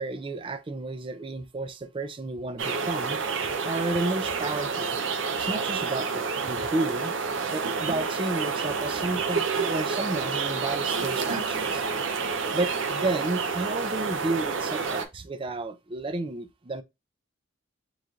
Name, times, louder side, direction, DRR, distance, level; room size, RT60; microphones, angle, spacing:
voice 1, 0.0-3.2 3.6-4.9 5.4-7.2 7.5-11.8 12.5-16.8, right 2 dB, 25° right, 0.4 m, -32 dB
sound 1, 2.6-15.0, right 5 dB, 70° right, 0.7 m, -29 dB
3.8 x 3.1 x 3.6 m
head